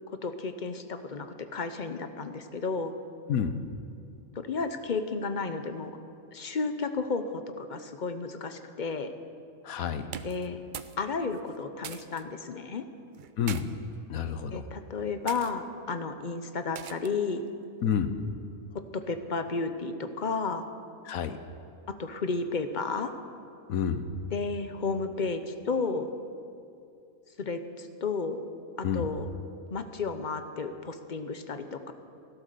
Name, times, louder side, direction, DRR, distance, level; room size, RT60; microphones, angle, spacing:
voice 1, 0.2-2.9 4.3-5.9 6.3-9.1 10.2-10.6 11.0-12.8 14.5-17.4 18.7-20.7 21.9-23.1 24.3-26.1 27.4-28.4 28.8-29.3 29.7-31.9, left 4 dB, 40° left, 9 dB, 0.8 m, -32 dB
voice 2, 9.6-10.1 13.4-13.6 14.1-14.6 17.8-18.2 21.0-21.4 23.7-24.0 28.8-29.1, left 8 dB, 80° left, 10 dB, 1.2 m, -29 dB
sound 1, 10.0-11.0 11.3-12.2 13.1-13.6 14.4-14.7 15.3-15.5 16.8-17.2, right 8 dB, 60° right, 0.5 m, -42 dB
16.0 x 12.0 x 6.7 m, 2.5 s
omnidirectional pair, 1.4 m